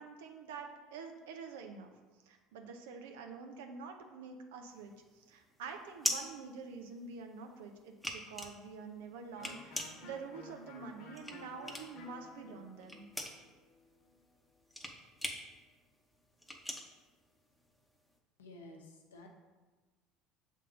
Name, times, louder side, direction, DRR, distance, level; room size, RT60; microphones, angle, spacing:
voice 1, 0.0-1.9 2.2-13.1, right 5 dB, 75° right, 4 dB, 0.7 m, -47 dB
sound 1, 4.7-7.3 7.7-12.1 12.4-17.9, left 1 dB, ahead, 0.9 m, -41 dB
Electric guitar, 9.3-15.0, left 2 dB, 55° left, 1.2 m, -55 dB
voice 2, 18.4-19.3, left 2 dB, 90° left, 2 dB, 0.9 m, -52 dB
6.9 x 3.7 x 3.8 m, 1.3 s
hypercardioid pair, 70°, 0 cm